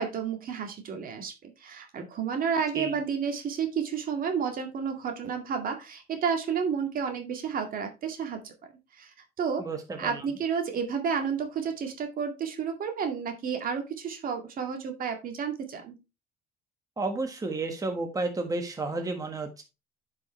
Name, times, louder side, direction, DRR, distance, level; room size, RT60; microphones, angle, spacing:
voice 1, 0.0-9.7 10.0-15.9, right 6 dB, 55° right, 5 dB, 2.1 m, -31 dB
voice 2, 9.6-10.2 17.0-19.6, right 3 dB, 20° right, 4 dB, 1.5 m, -32 dB
10.5 x 5.4 x 3.2 m, 0.26 s
cardioid pair, 110°, 17 cm